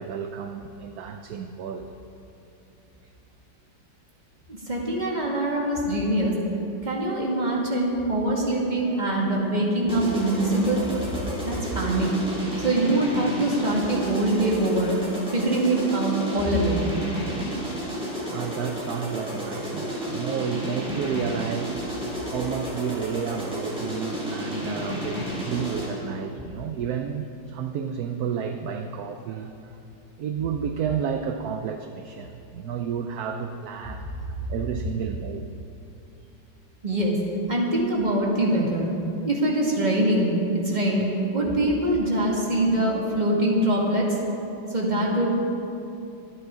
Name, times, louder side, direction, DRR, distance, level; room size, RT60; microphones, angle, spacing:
voice 1, 0.0-1.9 18.3-21.8 22.3-29.8 30.2-35.5, right 7 dB, 70° right, 6 dB, 1.0 m, -31 dB
voice 2, 4.5-6.4 6.8-10.8 11.4-12.1 12.6-15.0 15.3-16.9 36.8-37.2 37.5-38.9 39.2-40.3 40.6-41.1 41.3-44.2 44.7-45.3, right 1 dB, 25° right, -3 dB, 2.1 m, -23 dB
sound 1, 9.9-26.1, equal, 5° right, 3.3 m, -32 dB
24.5 x 9.0 x 3.7 m, 2.8 s
omnidirectional pair, 2.1 m